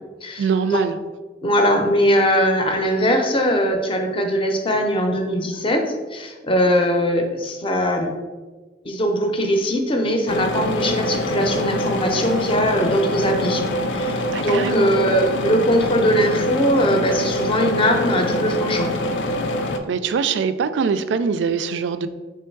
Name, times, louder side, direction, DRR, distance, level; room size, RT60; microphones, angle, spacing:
voice 1, 0.4-1.0 14.3-15.0 19.9-22.1, right 6 dB, 75° right, 11 dB, 0.3 m, -23 dB
voice 2, 1.4-5.8 6.1-8.1 8.8-13.6 13.9-18.9, equal, 30° left, 4 dB, 0.5 m, -20 dB
sound 1, 10.3-19.8, left 1 dB, 85° left, 0.4 m, -24 dB
3.5 x 3.1 x 4.5 m, 1.3 s
head